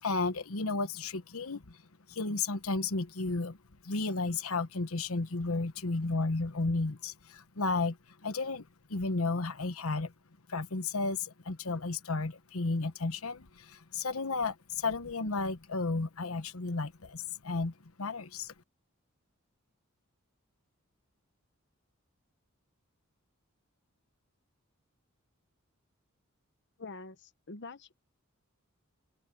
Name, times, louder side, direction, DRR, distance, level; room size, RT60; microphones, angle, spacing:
voice 1, 0.0-1.8 2.1-3.6 3.8-8.0 8.2-10.1 10.5-18.5, left 3 dB, 90° left, 1.2 m, -33 dB
voice 2, 26.8-28.0, left 3 dB, 55° left, 1.0 m, -45 dB
open air
head